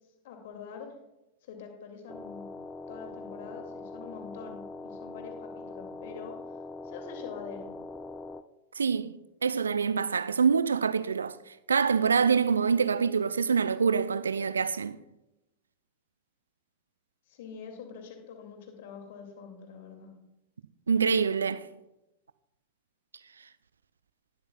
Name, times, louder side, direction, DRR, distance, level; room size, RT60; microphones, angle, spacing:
voice 1, 0.2-0.9 1.4-2.5 2.9-6.4 6.8-7.7 17.3-20.1, left 6 dB, 55° left, 2.2 m, -45 dB
sound 1, 2.1-8.4, left 3 dB, 10° left, 0.5 m, -42 dB
voice 2, 8.8-9.1 9.4-11.4 11.7-15.0 20.9-21.7, right 6 dB, 70° right, 0.4 m, -25 dB
19.5 x 7.9 x 2.3 m
figure-of-eight pair, 90°, 0 cm